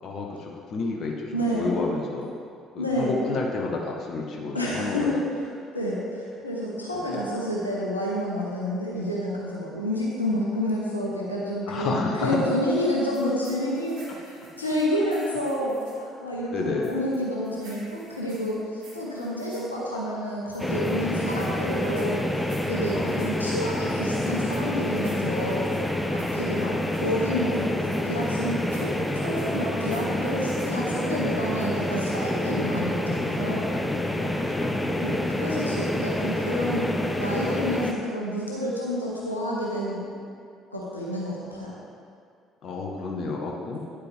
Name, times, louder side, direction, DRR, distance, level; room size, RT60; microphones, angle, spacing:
voice 1, 0.0-2.3 2.7-5.2 6.9-7.3 11.7-12.4 16.5-17.0 22.9-23.4 26.5-26.8 34.1-34.9 42.6-43.8, left 3 dB, 50° left, 0 dB, 1.1 m, -31 dB
voice 2, 1.3-1.7 2.8-3.2 4.5-5.5 5.7-22.3 22.6-25.7 26.1-33.7 35.0-40.2 40.7-41.7, equal, 85° left, -5 dB, 1.1 m, -29 dB
sound 1, 13.1-16.0 16.8-19.7 20.5-23.4 24.2-27.1 27.9-30.8 31.6-31.9, right 2 dB, 65° right, 2.4 m, -51 dB
sound 2, 20.6-37.9, left 1 dB, 10° left, 0.8 m, -27 dB
9.7 x 8.1 x 3.7 m, 2.3 s
figure-of-eight pair, 50°, 0 cm